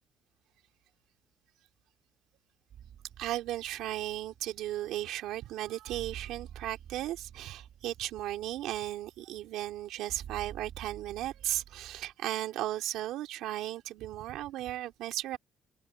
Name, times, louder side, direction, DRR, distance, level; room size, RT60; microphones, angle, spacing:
sound 1, 2.7-12.1, right 10 dB, 55° right, 4.7 m, -49 dB
voice 1, 3.2-15.4, right 14 dB, 80° right, 3.1 m, -36 dB
open air
cardioid pair, 145°, 0 cm